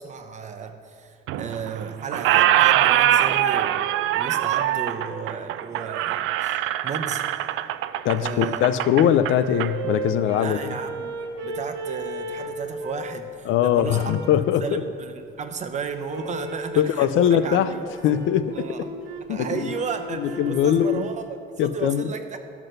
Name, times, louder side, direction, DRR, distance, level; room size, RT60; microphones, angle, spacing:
voice 1, 0.0-7.2 8.1-8.6 10.3-11.2 11.4-14.1 14.6-17.9 18.5-18.9 19.3-22.4, right 5 dB, 35° right, 7 dB, 0.8 m, -34 dB
Squeak, 1.3-1.8 2.1-9.7, right 12 dB, 85° right, 0.4 m, -23 dB
voice 2, 8.0-10.7 13.5-14.8 16.8-17.7 18.0-18.7 19.3-19.7 20.2-21.1 21.6-22.1, left 10 dB, 75° left, 13 dB, 0.5 m, -21 dB
sound 1, 9.0-13.2 13.8-14.5 16.1-16.7 17.3-21.3, right 3 dB, 60° right, 1.2 m, -35 dB
12.0 x 6.0 x 6.6 m, 2.6 s
cardioid pair, 145°, 20 cm